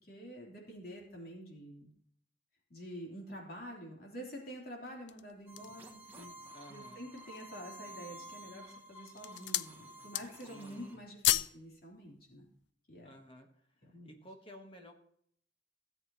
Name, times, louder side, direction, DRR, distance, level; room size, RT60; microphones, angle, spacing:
voice 1, 0.0-1.9 2.7-6.3 6.7-12.4 12.9-13.1 13.9-14.1, equal, 55° left, 0 dB, 3.1 m, -48 dB
sound 1, 4.9-5.9 6.5-6.6 7.0-7.6 8.3-8.6 9.0-9.8 10.0-10.6 10.8-11.6 11.9-12.1, left 13 dB, 85° left, 0.4 m, -33 dB
sound 2, 5.5-11.0, right 1 dB, 10° right, 1.7 m, -51 dB
voice 2, 6.5-7.1 10.5-11.0 13.0-13.5 14.0-15.0, equal, 30° left, 4 dB, 1.2 m, -53 dB
16.5 x 7.8 x 2.9 m, 0.65 s
head